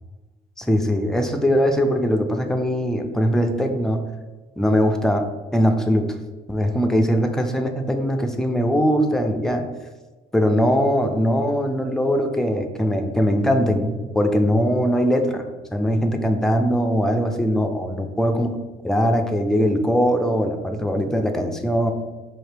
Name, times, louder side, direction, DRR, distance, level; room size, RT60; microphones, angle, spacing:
voice 1, 0.6-4.0 4.6-5.2 5.5-6.1 6.5-9.7 10.3-15.4 15.7-18.5 18.8-21.9, equal, 5° left, 4 dB, 0.4 m, -21 dB
4.3 x 2.7 x 3.3 m, 1.3 s
cardioid pair, 110°, 17 cm